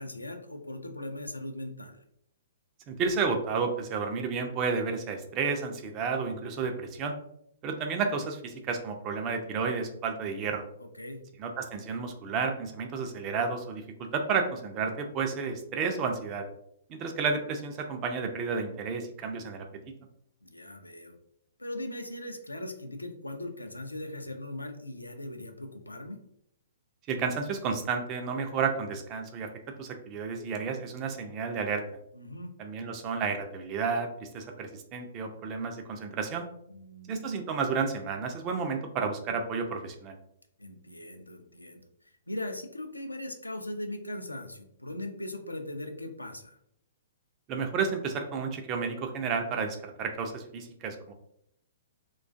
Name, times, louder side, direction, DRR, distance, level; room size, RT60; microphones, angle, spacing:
voice 1, 0.0-2.0 11.0-11.2 20.4-21.1 21.6-26.2 32.1-32.5 36.7-37.3 40.6-41.8 42.3-46.6, left 1 dB, 85° left, 5 dB, 0.3 m, -39 dB
voice 2, 2.9-7.1 7.6-10.6 11.4-16.4 16.9-19.7 27.1-29.5 29.8-31.8 32.6-36.5 37.1-40.2 47.5-51.1, right 5 dB, 30° right, 4 dB, 0.4 m, -31 dB
2.4 x 2.2 x 2.4 m, 0.73 s
figure-of-eight pair, 115°, 0 cm